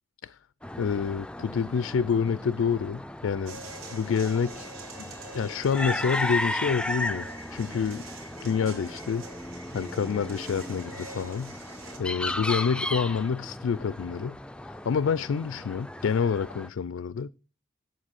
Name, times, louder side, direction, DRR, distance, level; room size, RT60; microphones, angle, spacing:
sound 1, 0.6-16.7, left 1 dB, 5° left, 0.4 m, -36 dB
voice 1, 0.8-3.6 3.9-8.1 8.4-9.3 9.7-11.5 12.0-14.4 14.8-17.3, left 6 dB, 70° left, 0.4 m, -28 dB
sound 2, 3.5-12.0, right 3 dB, 85° right, 2.8 m, -45 dB
7.9 x 7.4 x 6.3 m
head